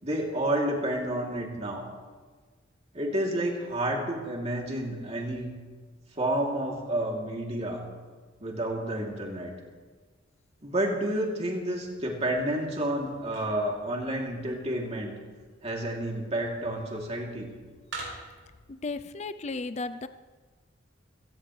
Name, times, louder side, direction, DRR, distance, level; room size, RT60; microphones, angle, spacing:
voice 1, 0.0-2.0 2.9-5.5 6.1-7.8 8.4-9.5 10.6-15.1 15.6-17.5, right 1 dB, 35° right, -1 dB, 2.9 m, -30 dB
sound 1, 11.8-18.6, right 2 dB, 85° right, 6.3 m, -48 dB
voice 2, 18.7-20.1, left 3 dB, 35° left, 11 dB, 0.4 m, -34 dB
22.0 x 17.5 x 3.3 m, 1.4 s
head